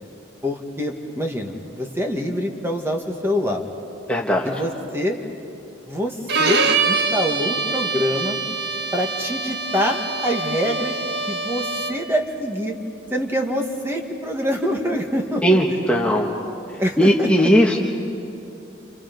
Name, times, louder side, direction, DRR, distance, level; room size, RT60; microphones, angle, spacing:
voice 1, 0.4-3.6 4.5-5.2 5.9-6.6 6.9-8.4 8.9-11.0 11.3-12.7 13.1-15.6 16.8-17.5, equal, 15° right, 2 dB, 1.8 m, -25 dB
voice 2, 4.1-4.5 15.4-16.3 17.0-17.8, equal, 5° left, -2 dB, 1.3 m, -18 dB
Bowed string instrument, 6.3-12.1, right 4 dB, 60° right, 1.3 m, -24 dB
30.0 x 27.5 x 5.3 m, 2.6 s
head